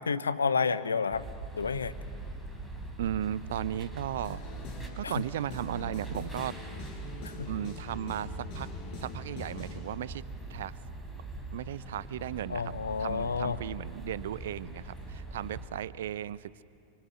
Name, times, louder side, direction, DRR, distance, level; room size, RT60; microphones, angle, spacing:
voice 1, 0.1-1.2 1.6-1.9 5.0-5.1 7.4-7.5 12.5-13.6, left 5 dB, 75° left, 14 dB, 1.0 m, -29 dB
sound 1, 1.1-15.7, right 2 dB, 5° left, 5.0 m, -42 dB
voice 2, 3.0-4.4 5.0-6.6 7.5-8.7 9.0-10.2 10.5-10.7 11.5-12.7 13.0-16.6, right 11 dB, 60° right, 18 dB, 0.7 m, -35 dB
sound 2, 4.2-9.8, left 4 dB, 45° left, 6.2 m, -44 dB
28.0 x 25.0 x 6.8 m, 2.4 s
figure-of-eight pair, 90°, 0 cm